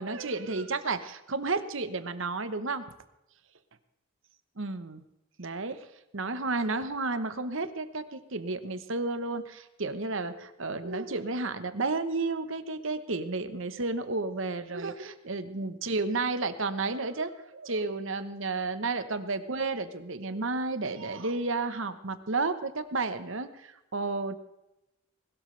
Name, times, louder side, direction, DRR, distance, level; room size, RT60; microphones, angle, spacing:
voice 1, 0.0-2.8 4.6-5.0 5.4-5.9 6.1-24.4, right 3 dB, 65° right, 11 dB, 1.1 m, -32 dB
20.5 x 13.0 x 3.4 m, 0.94 s
head